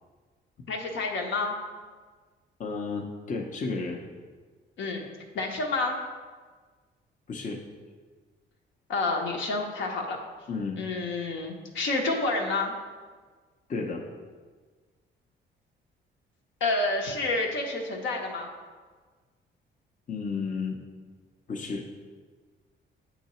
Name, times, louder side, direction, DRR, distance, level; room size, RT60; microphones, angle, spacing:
voice 1, 0.7-1.5 4.8-5.1 5.3-6.0 8.9-10.2 10.8-12.7 16.6-18.5, left 3 dB, 75° left, 1 dB, 0.9 m, -29 dB
voice 2, 2.6-4.0 7.3-7.6 10.5-10.8 13.7-14.0 20.1-20.8 21.5-21.9, left 4 dB, 40° left, 1 dB, 0.6 m, -32 dB
7.9 x 2.8 x 4.2 m, 1.5 s
cardioid pair, 90°, 20 cm